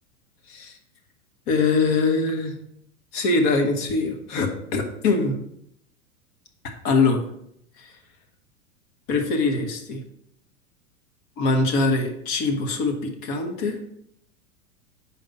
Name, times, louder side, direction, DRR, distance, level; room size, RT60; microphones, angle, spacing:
voice 1, 1.5-2.5 3.1-5.4 6.8-7.2 7.8-7.9 9.1-10.0 11.4-13.8, left 3 dB, 45° left, 4 dB, 1.2 m, -23 dB
5.1 x 4.3 x 5.2 m, 0.72 s
hypercardioid pair, 105°, 44 cm